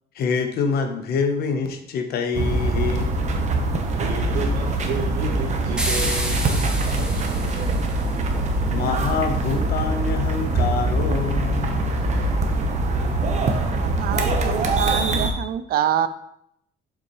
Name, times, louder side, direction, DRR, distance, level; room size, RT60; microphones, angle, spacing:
voice 1, 0.1-3.4 8.7-11.9, left 5 dB, 65° left, 6 dB, 1.0 m, -26 dB
sound 1, 2.3-15.3, right 2 dB, 45° right, 1.1 m, -23 dB
voice 2, 4.0-7.3, right 5 dB, 80° right, -2 dB, 1.3 m, -32 dB
sound 2, 5.8-8.2, right 1 dB, 5° right, 1.2 m, -29 dB
voice 3, 13.7-16.1, right 10 dB, 65° right, 13 dB, 0.5 m, -25 dB
7.0 x 5.9 x 3.1 m, 0.74 s
cardioid pair, 110°, 17 cm